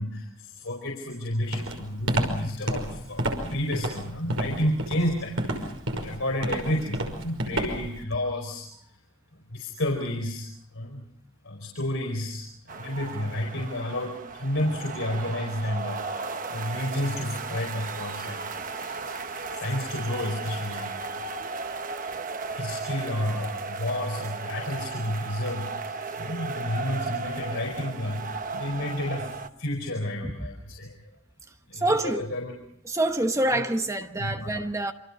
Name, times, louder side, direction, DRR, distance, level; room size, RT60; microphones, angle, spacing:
voice 1, 0.0-8.6 9.5-11.0 11.4-19.1 19.5-21.2 22.5-29.3 29.6-30.9 31.7-32.5 33.5-33.6 34.2-34.7, left 1 dB, 70° left, 4.8 m, -31 dB
Walk footsteps, 1.5-8.0, right 1 dB, 70° right, 5.6 m, -29 dB
sound 1, 12.7-29.5, right 4 dB, 40° right, 1.1 m, -35 dB
voice 2, 31.7-32.3 32.9-34.9, right 1 dB, 15° right, 1.1 m, -26 dB
28.0 x 26.0 x 5.5 m
head